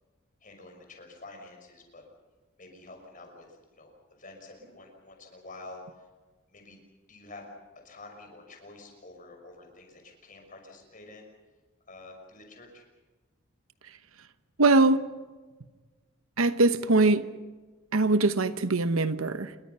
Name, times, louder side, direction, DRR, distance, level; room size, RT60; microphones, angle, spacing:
voice 1, 0.4-2.0 2.6-5.8 6.5-6.8 7.1-7.5 7.8-11.3 11.9-12.8, left 2 dB, 40° left, 6.1 m, -48 dB
voice 2, 14.6-15.0 16.4-17.2 17.9-19.5, right 2 dB, 75° right, 1.0 m, -22 dB
27.5 x 23.0 x 5.6 m
head